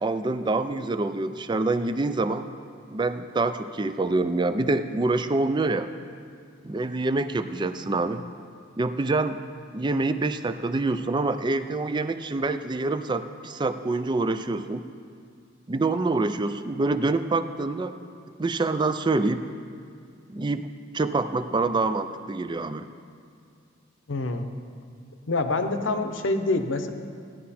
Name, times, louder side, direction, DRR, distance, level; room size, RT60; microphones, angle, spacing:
voice 1, 0.0-2.5 2.9-5.9 6.6-8.2 8.8-9.4 9.7-14.8 15.7-17.9 18.4-19.4 20.3-20.7 20.9-22.9, right 3 dB, 20° right, 11 dB, 0.4 m, -26 dB
voice 2, 24.1-24.5 25.3-26.9, left 2 dB, 65° left, 7 dB, 0.8 m, -26 dB
15.5 x 10.5 x 4.2 m, 2.4 s
head